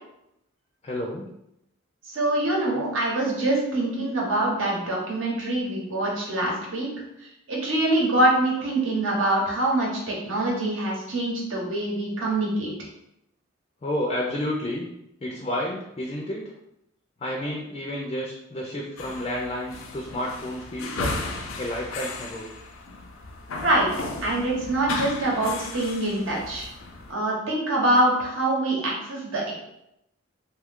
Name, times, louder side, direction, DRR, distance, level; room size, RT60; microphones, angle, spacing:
voice 1, 0.8-1.3 2.7-2.8 13.8-14.9 15.2-16.5 17.2-21.2 21.6-22.5, left 1 dB, 30° left, -1 dB, 0.3 m, -30 dB
voice 2, 2.1-6.9 7.2-12.7 23.6-23.9 24.2-26.7 27.1-29.5, right 1 dB, 80° right, -3 dB, 1.0 m, -24 dB
sound 1, 19.0-27.1, left 3 dB, 85° left, 0.5 m, -35 dB
2.8 x 2.3 x 3.5 m, 0.83 s
head